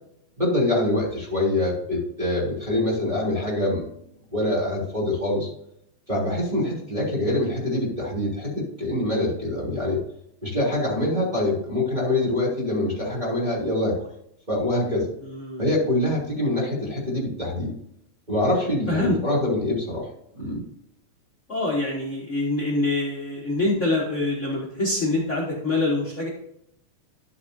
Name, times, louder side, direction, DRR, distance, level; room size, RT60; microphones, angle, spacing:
voice 1, 0.4-3.8 4.3-5.5 6.1-10.0 10.4-14.0 14.5-15.1 15.6-17.7 18.3-20.1 20.3-20.6, left 1 dB, 15° right, -5 dB, 2.9 m, -24 dB
voice 2, 15.2-15.6 18.9-19.2 21.5-26.3, left 2 dB, 55° left, -4 dB, 0.7 m, -25 dB
12.0 x 8.4 x 2.7 m, 0.74 s
omnidirectional pair, 3.8 m